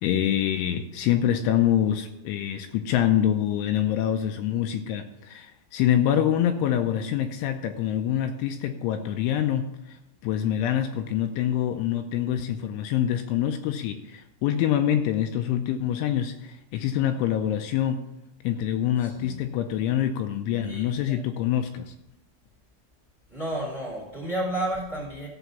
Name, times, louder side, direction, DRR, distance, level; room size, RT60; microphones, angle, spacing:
voice 1, 0.0-10.0 10.2-18.1 18.4-21.9, left 10 dB, 80° left, 6 dB, 2.8 m, -25 dB
voice 2, 19.0-19.4 20.6-21.2 23.3-25.3, right 1 dB, 25° right, -1 dB, 1.4 m, -32 dB
14.0 x 5.0 x 7.0 m, 0.89 s
omnidirectional pair, 5.8 m